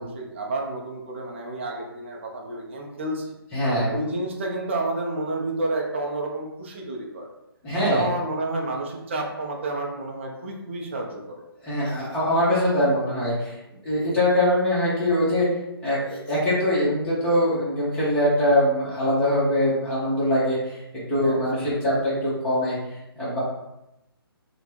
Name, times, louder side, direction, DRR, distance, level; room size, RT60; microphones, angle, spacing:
voice 1, 0.0-3.3 3.9-7.3 7.8-11.4 21.2-22.0, right 2 dB, 30° right, 0 dB, 0.4 m, -30 dB
voice 2, 3.5-3.9 7.6-8.1 11.6-13.6 13.8-15.5 15.8-20.8 21.1-22.8 23.2-23.4, equal, 10° left, -9 dB, 0.8 m, -22 dB
3.1 x 2.0 x 3.1 m, 0.90 s
figure-of-eight pair, 140°, 13 cm